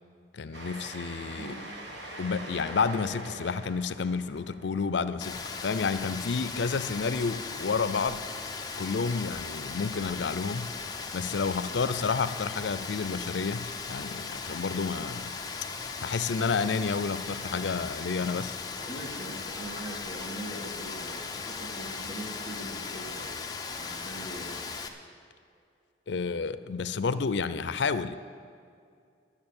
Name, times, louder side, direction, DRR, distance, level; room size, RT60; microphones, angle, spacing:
voice 1, 0.3-1.5 2.2-8.2 8.8-10.7 11.1-15.3 16.0-18.6 26.1-28.1, left 5 dB, 75° left, 14 dB, 0.5 m, -30 dB
Train, 0.5-6.7, right 1 dB, 75° right, 1.6 m, -44 dB
Rain, 5.2-24.9, left 4 dB, 20° left, 0.8 m, -38 dB
voice 2, 18.8-23.3 23.8-24.6, equal, 25° right, -3 dB, 1.8 m, -41 dB
12.5 x 7.1 x 8.8 m, 2.4 s
head